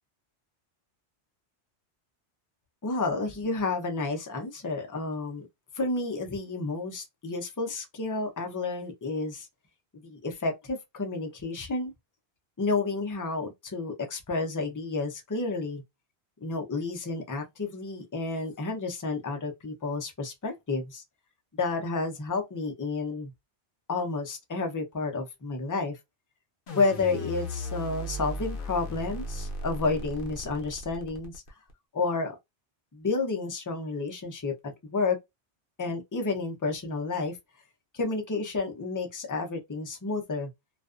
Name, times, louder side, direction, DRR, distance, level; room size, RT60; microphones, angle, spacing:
voice 1, 2.8-5.5 5.7-9.5 10.0-11.9 12.6-15.8 16.4-21.0 21.5-23.3 23.9-26.0 26.7-31.4 31.9-32.4 32.9-35.2 35.8-37.4 37.9-40.5, left 3 dB, 25° left, 0.4 m, -31 dB
sound 1, 26.7-31.7, equal, 55° left, 0.8 m, -36 dB
2.4 x 2.2 x 2.4 m
omnidirectional pair, 1.2 m